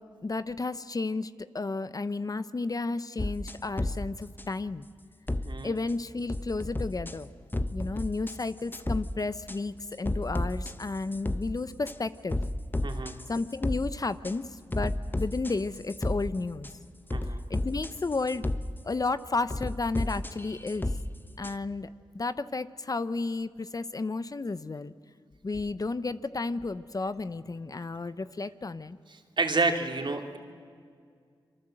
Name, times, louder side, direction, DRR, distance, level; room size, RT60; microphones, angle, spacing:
voice 1, 0.0-4.8 5.6-7.3 7.7-12.4 13.3-16.7 17.5-18.5 18.8-20.9 21.4-21.9 22.1-24.9 25.4-29.0, left 3 dB, 40° left, 14 dB, 0.9 m, -32 dB
sound 1, 3.2-4.0 4.4-4.5 5.3-5.5 5.9-6.0 6.3-7.2 7.5-8.4 8.7-9.0 9.5-9.6 10.1-11.4 11.9-12.0 12.3-13.8 14.2-14.3 14.7-16.2 16.6-16.7 17.1-18.6 19.5-21.0 21.4-21.5, left 1 dB, 20° left, 1.2 m, -31 dB
voice 2, 12.8-13.2 17.1-17.4 29.4-30.4, right 3 dB, 55° right, 4 dB, 3.0 m, -29 dB
27.0 x 23.5 x 7.9 m, 2.1 s
cardioid pair, 55°, 9 cm